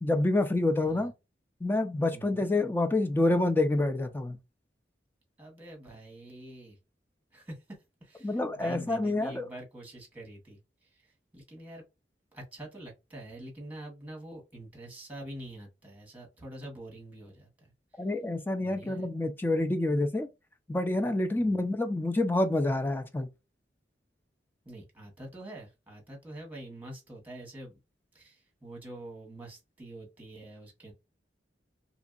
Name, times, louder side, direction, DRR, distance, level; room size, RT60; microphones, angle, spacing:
voice 1, 0.0-1.1 1.6-4.4 8.2-9.5 18.0-20.3 20.7-23.3, left 2 dB, 10° left, 0.3 m, -27 dB
voice 2, 2.1-2.5 5.4-6.8 7.3-11.8 12.3-17.7 18.6-19.1 21.3-21.7 24.6-27.8 28.1-30.9, right 1 dB, 10° right, 1.2 m, -46 dB
2.9 x 2.6 x 2.4 m
head